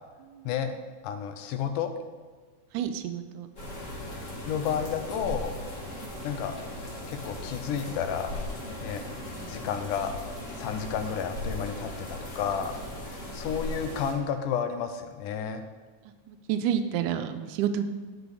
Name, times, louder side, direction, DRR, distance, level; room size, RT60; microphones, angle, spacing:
voice 1, 1.0-1.9 4.5-5.5 6.2-6.6 7.1-8.4 8.8-9.0 9.5-10.1 10.6-12.7 13.0-15.6, left 7 dB, 85° left, 8 dB, 2.3 m, -31 dB
voice 2, 2.7-3.5 5.9-6.1 9.2-9.6 13.2-13.5 16.3-17.8, right 9 dB, 85° right, 9 dB, 2.1 m, -31 dB
sound 1, 3.6-14.1, left 1 dB, 30° left, 1.5 m, -38 dB
10.0 x 6.7 x 4.9 m, 1.5 s
omnidirectional pair, 3.6 m